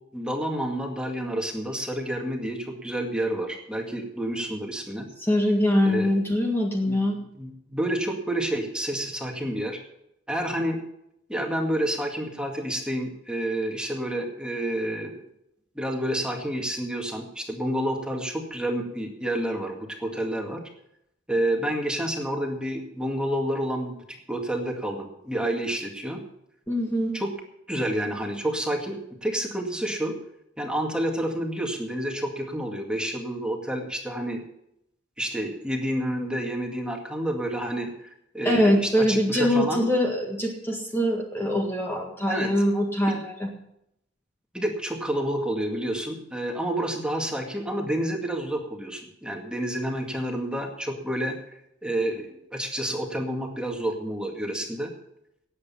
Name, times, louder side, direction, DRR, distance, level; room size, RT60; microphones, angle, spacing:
voice 1, 0.1-5.1 5.9-6.1 6.8-7.0 7.4-9.8 10.3-10.8 11.3-15.2 15.8-20.6 21.3-26.2 27.1-27.3 27.7-30.1 30.6-34.4 35.2-39.8 42.3-42.5 43.1-43.2 44.5-51.4 51.8-54.9, right 1 dB, 5° right, 1 dB, 2.1 m, -29 dB
voice 2, 5.2-7.2 26.7-27.1 38.4-43.5, equal, 10° left, 0 dB, 1.8 m, -23 dB
18.0 x 8.3 x 5.7 m, 0.78 s
head